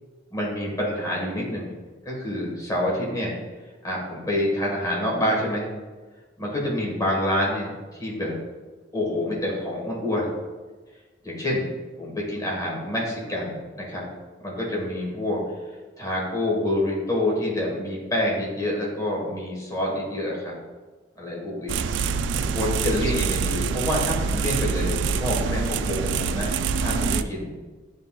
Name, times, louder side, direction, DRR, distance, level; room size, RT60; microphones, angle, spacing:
voice 1, 0.3-1.7 2.0-3.3 3.8-5.7 6.4-8.3 8.9-10.3 11.2-11.7 12.0-14.0 14.4-15.4 16.0-20.5 21.2-21.8 22.4-27.5, left 1 dB, 20° left, -3 dB, 1.5 m, -27 dB
sound 1, 21.7-27.2, right 5 dB, 70° right, 0.3 m, -25 dB
10.5 x 3.7 x 2.4 m, 1.3 s
head